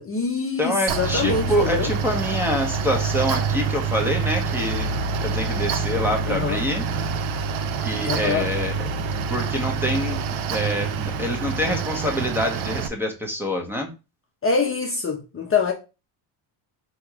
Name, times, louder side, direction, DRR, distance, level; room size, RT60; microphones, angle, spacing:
voice 1, 0.0-1.9 6.3-6.6 8.0-8.5 14.4-15.7, left 5 dB, 30° left, 0.8 m, -24 dB
voice 2, 0.6-4.9 5.2-6.9 7.8-8.7 9.3-10.2 10.5-13.9, equal, 5° right, 1.0 m, -26 dB
Mechanical fan, 0.9-12.9, right 5 dB, 75° right, 0.7 m, -26 dB
3.5 x 3.1 x 4.6 m
cardioid pair, 115°, 48 cm